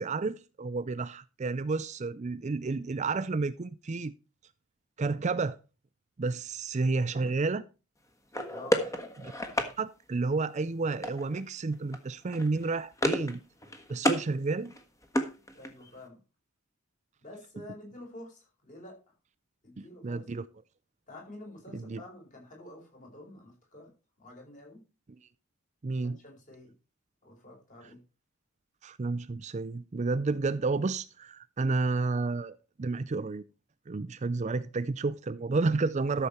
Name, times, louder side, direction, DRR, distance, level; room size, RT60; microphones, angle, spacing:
voice 1, 0.0-4.1 5.0-5.6 6.2-7.6 9.2-9.3 9.8-13.4 13.9-14.7 19.8-20.4 21.7-22.0 25.8-26.2 28.8-33.4 33.9-36.3, right 3 dB, 30° right, 0.4 m, -31 dB
sound 1, 8.3-9.7 11.0-11.4 11.7-12.0 12.3-13.4 13.6-14.3 14.6-15.9, equal, 15° left, 1.4 m, -31 dB
voice 2, 8.5-8.9 15.4-16.2 17.2-19.0 19.6-20.2 21.1-23.9 24.2-24.8 26.0-26.7 27.2-28.0, left 1 dB, 35° left, 4.7 m, -48 dB
13.0 x 6.9 x 4.4 m
head